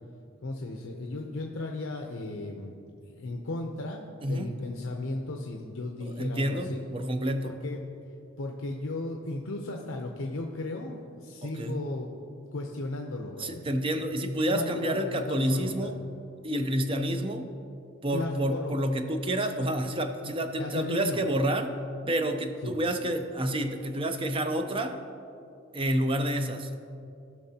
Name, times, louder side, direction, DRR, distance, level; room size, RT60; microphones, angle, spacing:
voice 1, 0.4-2.8 3.1-6.8 7.4-7.8 8.4-12.1 12.5-13.6 14.5-15.9 18.1-18.7 20.6-21.2 22.6-22.8, left 2 dB, 80° left, 1 dB, 0.7 m, -35 dB
voice 2, 6.0-7.5 11.4-11.8 13.4-16.0 16.4-17.5 18.0-21.7 22.1-25.0 25.7-26.7, right 1 dB, 25° right, 7 dB, 0.5 m, -29 dB
16.0 x 5.9 x 2.8 m, 2.6 s
head